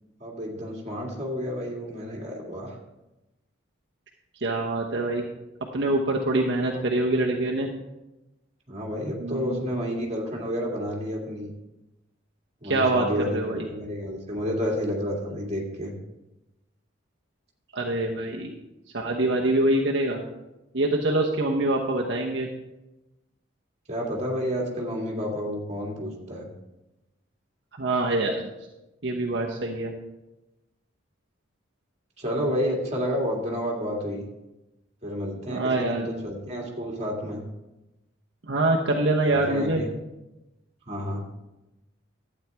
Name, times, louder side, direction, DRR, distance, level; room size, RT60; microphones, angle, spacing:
voice 1, 0.2-2.8 8.7-11.5 12.6-15.9 23.9-26.5 32.2-34.2 35.0-37.4 39.3-39.9 40.9-41.2, equal, 30° right, -1 dB, 1.9 m, -30 dB
voice 2, 4.4-5.2 5.7-7.7 9.2-9.6 12.6-13.7 17.7-18.5 18.9-20.2 20.7-22.5 27.7-28.5 29.0-29.9 35.5-36.1 38.4-39.8, right 2 dB, 60° right, -1 dB, 0.9 m, -25 dB
12.0 x 8.7 x 3.5 m, 0.97 s
head